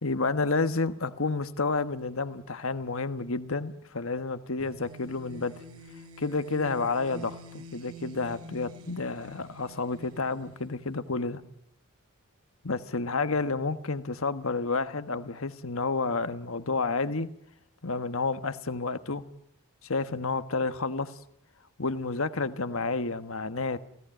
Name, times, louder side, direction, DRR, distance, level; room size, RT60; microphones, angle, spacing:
voice 1, 0.0-5.5 6.2-11.4 12.6-17.3 17.8-19.2 19.8-21.1 21.8-23.8, left 3 dB, 70° left, 11 dB, 1.4 m, -30 dB
sound 1, 4.6-11.2, equal, 80° right, 3.8 m, -47 dB
29.5 x 17.5 x 9.1 m, 0.73 s
head